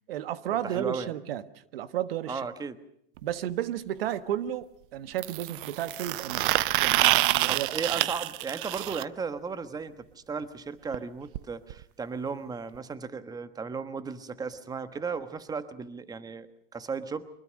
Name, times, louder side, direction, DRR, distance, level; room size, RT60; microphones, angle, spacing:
voice 1, 0.1-2.5 3.2-6.5 6.8-7.8, right 11 dB, 75° right, 13 dB, 1.4 m, -33 dB
voice 2, 0.6-1.1 2.3-2.8 7.5-17.3, right 5 dB, 15° right, 12 dB, 1.3 m, -35 dB
sound 1, 3.2-3.3 5.2-9.0 10.9-11.0 11.3-11.4 11.7-11.8 12.7-12.8, right 17 dB, 60° right, 0.8 m, -27 dB
24.5 x 21.0 x 6.4 m, 0.74 s
supercardioid pair, 130°, 29 cm